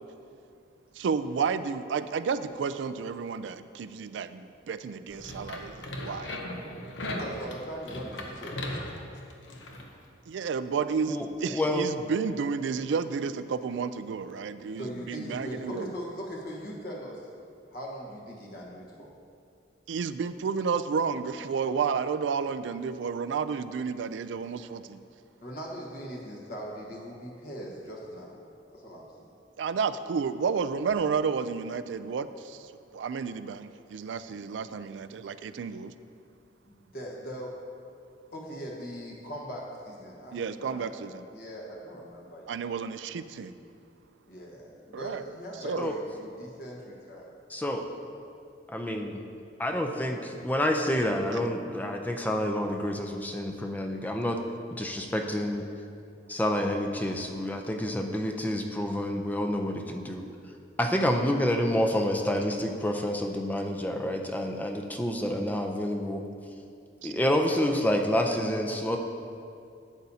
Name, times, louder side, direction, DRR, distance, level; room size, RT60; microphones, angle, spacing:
voice 1, 0.9-6.4 10.3-15.9 19.9-25.0 29.6-35.9 40.3-41.3 42.5-43.5 44.9-45.2 45.6-45.9 67.0-67.1, right 5 dB, 80° right, 12 dB, 0.4 m, -31 dB
sound 1, 5.1-9.9, left 1 dB, 85° left, 0.9 m, -37 dB
voice 2, 7.1-8.6 14.8-17.3 17.7-19.1 25.4-28.4 28.7-29.3 36.6-37.6 38.3-42.7 44.3-47.3, equal, 55° left, -3 dB, 1.3 m, -40 dB
voice 3, 11.5-11.8 45.8-46.0 47.5-47.8 48.7-49.2 49.6-54.4 54.7-55.6 56.3-60.2 60.8-66.2 67.0-69.0, left 1 dB, 10° left, 3 dB, 0.5 m, -28 dB
11.5 x 8.3 x 2.8 m, 2.5 s
head